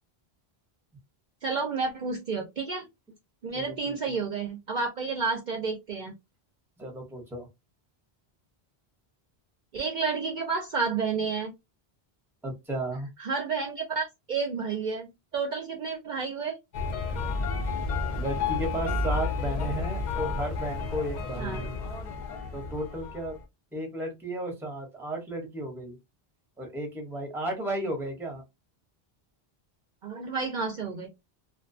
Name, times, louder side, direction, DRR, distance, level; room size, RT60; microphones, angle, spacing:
voice 1, 1.4-2.9 3.4-6.1 9.7-11.5 13.2-15.1 15.3-16.6 21.4-21.6 30.0-31.1, right 4 dB, 55° right, 0.6 m, -30 dB
voice 2, 3.5-3.9 6.8-7.5 12.4-13.1 18.2-21.8 22.5-23.3 23.7-26.0 26.6-28.4, right 1 dB, 5° right, 0.7 m, -34 dB
sound 1, 16.7-23.4, left 4 dB, 55° left, 0.6 m, -31 dB
2.5 x 2.2 x 2.5 m
omnidirectional pair, 1.0 m